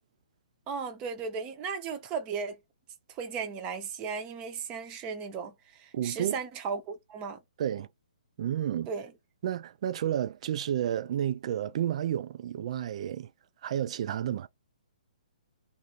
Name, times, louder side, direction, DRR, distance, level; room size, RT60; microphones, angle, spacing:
voice 1, 0.7-2.6 3.1-7.4 8.9-9.1, right 5 dB, 25° right, 0.7 m, -36 dB
voice 2, 5.9-6.4 7.6-7.9 8.4-8.9 9.4-13.3 13.6-14.5, right 10 dB, 50° right, 0.4 m, -31 dB
2.6 x 2.5 x 2.9 m
hypercardioid pair, 140°, 4 cm